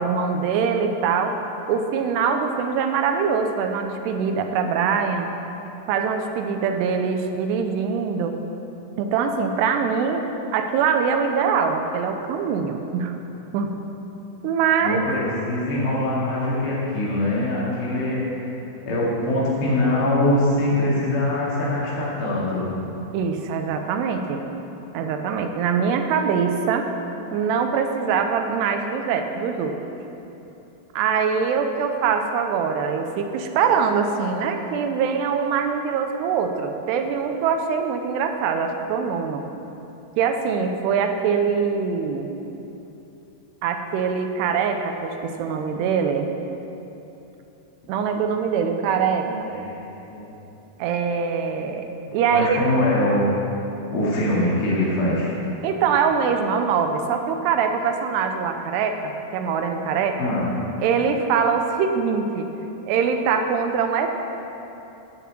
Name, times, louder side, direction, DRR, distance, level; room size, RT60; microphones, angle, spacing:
voice 1, 0.0-1.3 1.7-5.3 5.9-8.4 9.0-10.2 10.5-13.2 13.5-13.7 14.4-15.0 23.1-24.4 24.9-26.9 27.3-29.8 30.9-39.4 40.2-42.3 43.6-46.3 47.9-49.5 50.8-51.9 52.1-52.6 55.6-59.0 59.3-60.2 60.8-62.5 62.9-64.1, right 6 dB, 85° right, 6 dB, 2.7 m, -23 dB
voice 2, 14.8-18.2 18.9-22.6 49.2-49.8 50.1-50.3 52.3-53.2 53.9-55.3 60.2-60.5, left 1 dB, 75° left, -6 dB, 4.5 m, -23 dB
15.0 x 5.5 x 7.5 m, 3.0 s
omnidirectional pair, 5.0 m